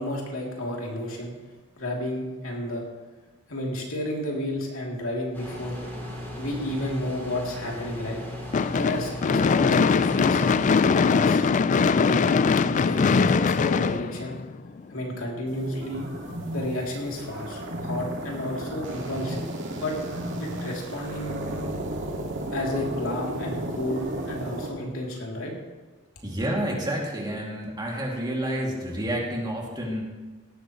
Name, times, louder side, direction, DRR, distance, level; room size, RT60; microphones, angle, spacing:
voice 1, 0.0-1.3 1.8-2.8 3.5-5.8 6.4-8.2 8.7-11.4 11.8-14.4 14.9-16.1 16.5-19.5 19.7-20.0 20.4-21.4 22.5-25.5, left 1 dB, 70° left, -2 dB, 3.0 m, -32 dB
sound 1, 5.3-10.7, left 1 dB, 10° left, 5.1 m, -36 dB
Gunshot gunfire / Fireworks, 8.5-14.8, left 5 dB, 35° left, 0.3 m, -21 dB
sound 2, 15.5-24.7, right 1 dB, 60° right, 2.0 m, -33 dB
voice 2, 26.2-30.1, right 1 dB, 20° right, -2 dB, 2.6 m, -29 dB
17.5 x 13.0 x 3.1 m, 1.3 s
head